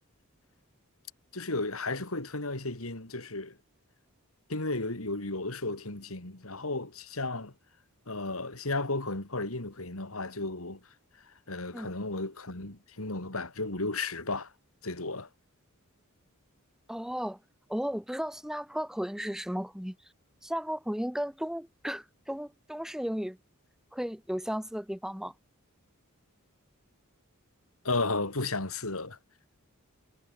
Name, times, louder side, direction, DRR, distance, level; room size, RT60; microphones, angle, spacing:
voice 1, 1.3-3.6 4.5-7.5 8.1-10.8 11.5-14.5 14.8-15.3 27.8-29.2, left 2 dB, 70° left, 3.6 m, -34 dB
voice 2, 16.9-17.4 17.7-20.0 20.4-23.4 23.9-25.3, equal, ahead, 1.4 m, -34 dB
head